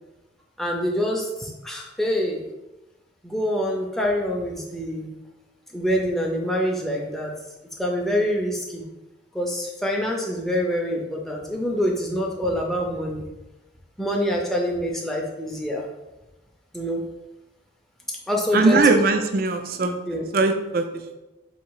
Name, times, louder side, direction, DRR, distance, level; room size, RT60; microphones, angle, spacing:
voice 1, 0.6-2.4 3.2-5.1 5.7-7.3 7.8-8.9 9.3-13.3 14.0-15.9 16.7-17.1 18.3-18.8 20.1-20.2, equal, ahead, -2 dB, 0.5 m, -25 dB
voice 2, 18.5-20.0 20.3-20.8, right 3 dB, 50° right, 7 dB, 0.4 m, -20 dB
4.1 x 2.7 x 4.7 m, 1.0 s
head